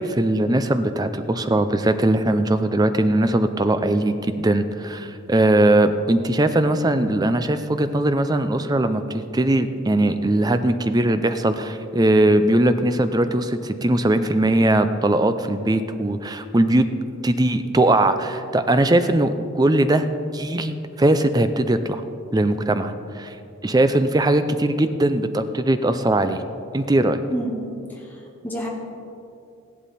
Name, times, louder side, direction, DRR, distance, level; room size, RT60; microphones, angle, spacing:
voice 1, 0.0-16.9 17.2-20.1 20.3-22.0 22.3-23.4 23.6-26.4 26.7-27.2, right 1 dB, 20° right, 9 dB, 0.4 m, -20 dB
voice 2, 27.3-27.6 27.9-28.7, equal, 10° left, -3 dB, 1.7 m, -29 dB
15.0 x 11.5 x 4.2 m, 2.6 s
head